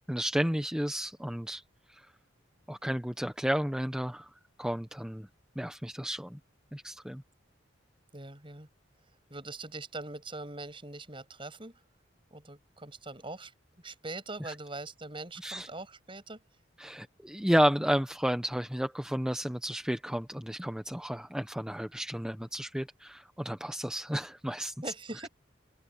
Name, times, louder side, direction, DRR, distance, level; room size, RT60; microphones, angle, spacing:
voice 1, 0.1-1.6 1.9-2.1 2.7-4.3 4.6-5.3 5.6-6.4 6.7-7.2 14.4-14.5 15.4-15.7 16.8-24.7, equal, 5° right, 0.8 m, -32 dB
voice 2, 8.1-8.7 9.3-11.8 12.3-13.5 13.8-16.4 24.8-25.3, right 2 dB, 25° right, 6.5 m, -42 dB
open air
head